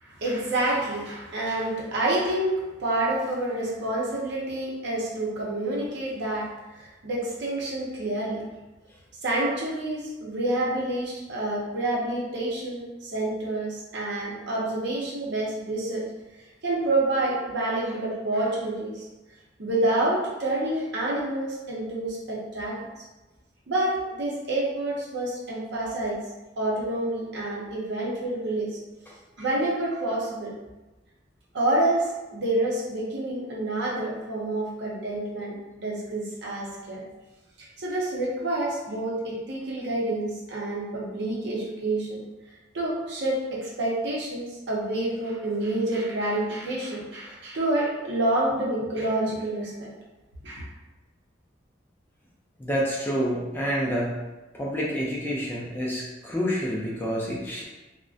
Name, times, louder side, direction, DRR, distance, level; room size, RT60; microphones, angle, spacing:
voice 1, 0.0-6.5 6.7-8.4 9.2-16.0 16.6-19.0 19.6-22.8 23.7-26.2 26.6-28.8 29.4-30.5 31.5-37.0 37.6-42.2 42.7-49.9 50.4-50.7, right 1 dB, 60° right, -4 dB, 0.6 m, -28 dB
voice 2, 52.6-54.1 54.5-57.6, equal, 10° left, -4 dB, 0.3 m, -28 dB
2.5 x 2.1 x 2.4 m, 1.1 s
head